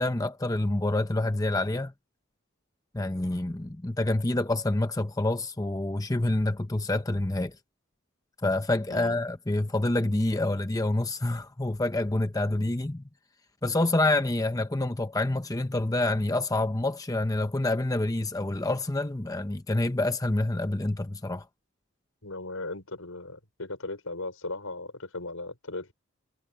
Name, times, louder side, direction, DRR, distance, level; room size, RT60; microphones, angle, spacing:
voice 1, 0.0-1.9 2.9-7.5 8.4-13.0 13.6-21.4, left 2 dB, 15° left, 0.7 m, -27 dB
voice 2, 8.9-9.2 22.2-25.9, left 2 dB, 80° left, 5.9 m, -37 dB
head